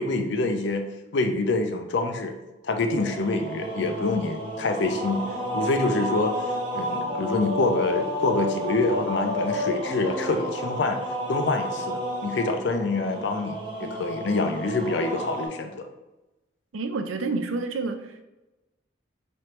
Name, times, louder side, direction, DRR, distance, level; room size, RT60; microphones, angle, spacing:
voice 1, 0.0-2.3 2.6-5.2 5.5-6.4 6.7-11.0 11.3-15.9, left 3 dB, 60° left, 6 dB, 0.4 m, -26 dB
sound 1, 2.9-15.5, equal, 25° right, 0.7 m, -31 dB
voice 2, 16.7-18.3, right 3 dB, 85° right, 7 dB, 0.5 m, -29 dB
3.2 x 3.0 x 4.4 m, 1.0 s
head